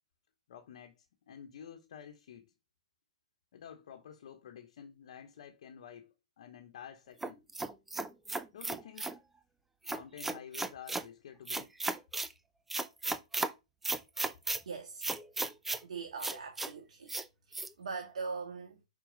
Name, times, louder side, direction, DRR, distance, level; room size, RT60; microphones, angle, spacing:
voice 1, 0.5-2.5 3.5-7.4 8.5-9.2 9.9-11.7, left 8 dB, 60° left, 1.2 m, -50 dB
sound 1, 7.2-9.2 9.8-11.1 11.5-12.3 12.7-13.5 13.8-14.6 15.0-15.8 16.2-16.7 17.1-17.2 17.5-17.7, right 3 dB, 5° right, 0.4 m, -35 dB
voice 2, 14.6-15.1 15.8-17.1 17.5-18.8, right 4 dB, 80° right, 1.7 m, -41 dB
5.6 x 4.6 x 5.2 m
hypercardioid pair, 150°, 4 cm